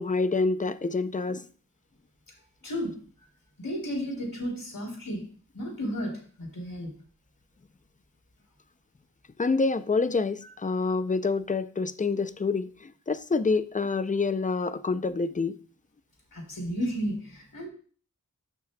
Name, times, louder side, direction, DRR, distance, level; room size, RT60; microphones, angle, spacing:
voice 1, 0.0-1.5 9.4-15.6, left 4 dB, 25° left, 0.5 m, -27 dB
voice 2, 2.6-3.0 3.6-5.2 5.5-6.9 16.3-17.7, equal, 90° left, 3.5 m, -33 dB
13.0 x 6.1 x 2.2 m
wide cardioid pair, 65°, 33 cm